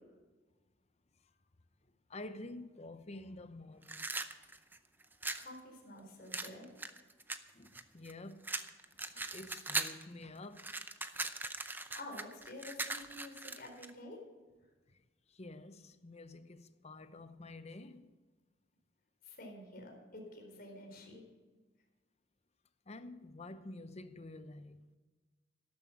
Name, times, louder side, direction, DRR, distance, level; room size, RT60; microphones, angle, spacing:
voice 1, 2.1-4.4 7.5-8.5 9.0-10.7 14.9-15.0 15.3-18.1 22.9-24.9, left 2 dB, 35° left, 0.8 m, -49 dB
sound 1, 3.8-5.5 6.3-8.1 8.4-10.0 10.4-13.9, right 3 dB, 10° right, 0.6 m, -40 dB
voice 2, 5.4-6.7 11.9-14.2 19.2-21.2, left 1 dB, 50° left, 4.3 m, -49 dB
13.0 x 12.5 x 6.0 m
head